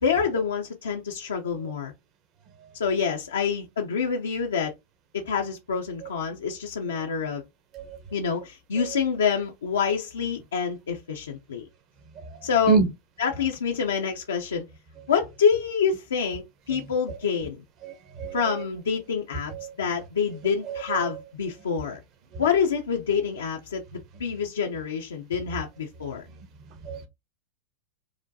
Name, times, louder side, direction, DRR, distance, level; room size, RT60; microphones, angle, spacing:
voice 1, 0.0-1.9 2.7-4.7 5.1-7.4 8.1-11.7 12.4-12.8 13.2-14.6 15.1-17.6 18.3-19.5 19.8-22.0 22.4-26.3, left 6 dB, 90° left, 0.6 m, -27 dB
voice 2, 17.8-18.4 19.6-19.7 20.7-21.0 26.8-27.1, right 5 dB, 45° right, 0.9 m, -25 dB
4.8 x 2.2 x 2.6 m
hypercardioid pair, 110°, 0 cm